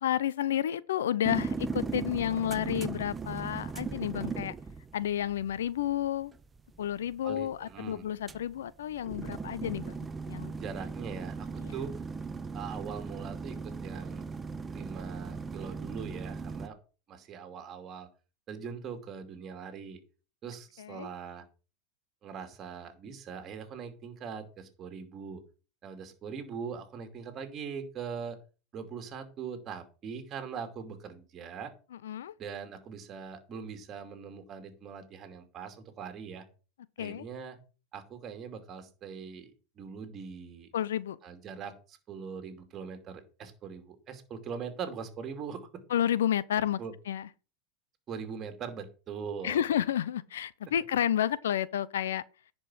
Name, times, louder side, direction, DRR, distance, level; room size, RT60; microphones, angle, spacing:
voice 1, 0.0-4.5 4.9-6.3 6.8-10.5 11.6-11.7 20.8-21.1 32.0-32.3 37.0-37.3 40.7-41.2 45.9-46.8 47.1-47.3 49.4-52.2, left 10 dB, 90° left, 0.6 m, -31 dB
sound 1, 1.2-16.7, right 4 dB, 15° right, 0.7 m, -38 dB
voice 2, 7.2-8.1 10.5-11.9 12.5-14.2 14.7-16.8 17.1-18.1 18.5-20.0 20.4-21.5 22.2-25.4 25.8-28.4 28.7-31.7 32.4-36.4 37.0-37.6 37.9-40.7 41.2-45.8 46.8-46.9 48.1-49.6, right 6 dB, 35° right, 2.6 m, -41 dB
10.5 x 5.4 x 6.3 m
supercardioid pair, 125°, 0 cm